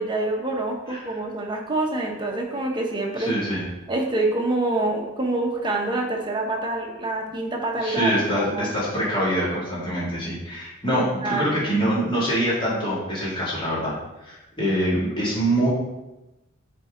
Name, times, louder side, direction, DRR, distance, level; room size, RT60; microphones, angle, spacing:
voice 1, 0.0-3.4 3.9-8.7 10.9-11.7, right 2 dB, 20° right, 0 dB, 1.0 m, -26 dB
voice 2, 3.2-3.6 7.8-13.9 14.2-15.7, right 1 dB, 25° left, -8 dB, 2.4 m, -24 dB
7.3 x 4.4 x 3.8 m, 0.99 s
head